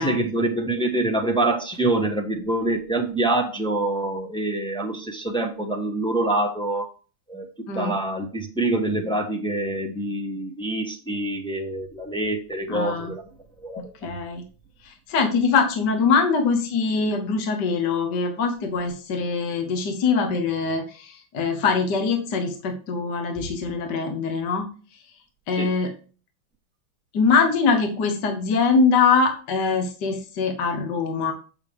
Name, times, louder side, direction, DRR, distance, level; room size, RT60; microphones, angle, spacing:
voice 1, 0.0-6.9 7.3-7.5 7.7-13.2 13.6-14.1 25.6-25.7, right 2 dB, 5° left, 1 dB, 0.8 m, -25 dB
voice 2, 12.7-13.1 14.0-14.4 14.8-24.7 25.5-25.9 27.1-31.3, left 5 dB, 55° left, 4 dB, 1.7 m, -23 dB
8.2 x 7.0 x 3.5 m, 0.37 s
omnidirectional pair, 2.4 m